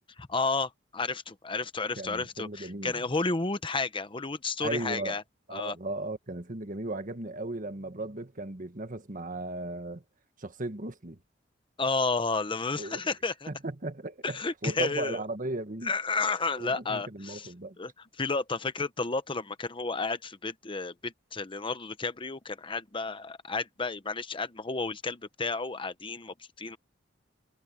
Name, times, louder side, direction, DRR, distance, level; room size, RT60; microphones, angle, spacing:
voice 1, 0.2-5.2 5.5-5.8 11.8-13.5 14.2-15.2 15.8-17.5 17.8-17.9 18.2-26.8, left 3 dB, 25° left, 1.0 m, -32 dB
voice 2, 2.0-3.0 4.6-5.2 5.5-10.0 10.4-11.2 12.8-13.1 13.5-14.4 14.6-15.9 16.6-17.8, right 2 dB, 45° right, 1.6 m, -36 dB
head